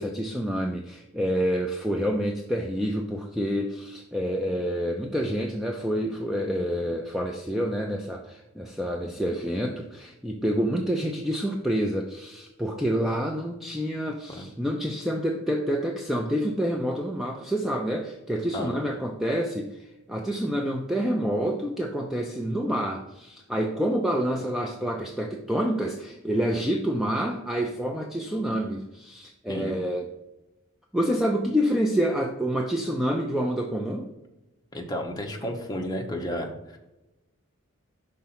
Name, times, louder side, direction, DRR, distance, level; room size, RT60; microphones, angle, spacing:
voice 1, 0.0-30.1 30.9-34.1, equal, ahead, 1 dB, 0.3 m, -28 dB
voice 2, 29.5-29.8 34.7-36.8, equal, 20° left, 1 dB, 0.8 m, -32 dB
5.7 x 3.8 x 5.7 m, 0.98 s
head